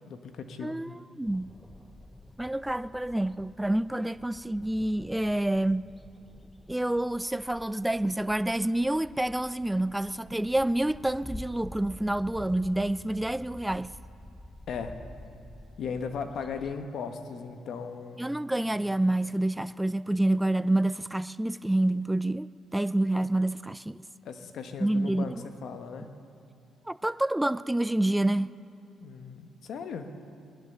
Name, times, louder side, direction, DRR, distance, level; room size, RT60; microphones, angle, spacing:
voice 1, 0.1-0.8 14.7-15.0 15.8-18.2 24.2-26.1 29.0-30.1, left 6 dB, 65° left, 1.2 m, -37 dB
voice 2, 0.6-1.5 2.4-5.9 6.7-13.9 18.2-24.0 24.8-25.4 26.9-28.5, right 1 dB, 5° right, 0.3 m, -28 dB
sound 1, 1.2-16.7, left 1 dB, 15° left, 0.7 m, -49 dB
19.0 x 11.0 x 6.8 m
cardioid pair, 90°, 0 cm